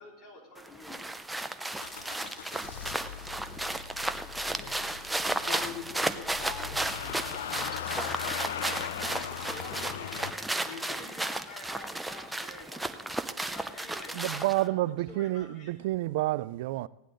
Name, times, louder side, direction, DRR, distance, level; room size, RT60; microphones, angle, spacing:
voice 1, 0.0-1.8 9.2-14.7 15.1-15.7, left 2 dB, 30° left, 3.6 m, -49 dB
sound 1, 0.6-14.7, right 1 dB, 5° right, 0.5 m, -34 dB
Motor vehicle (road) / Engine starting, 1.8-10.3, left 10 dB, 85° left, 0.6 m, -39 dB
voice 2, 4.6-5.0 5.4-8.8 10.6-10.8, left 7 dB, 65° left, 2.9 m, -44 dB
voice 3, 14.1-16.9, right 17 dB, 65° right, 0.3 m, -29 dB
17.0 x 10.0 x 3.9 m
supercardioid pair, 135°, 0 cm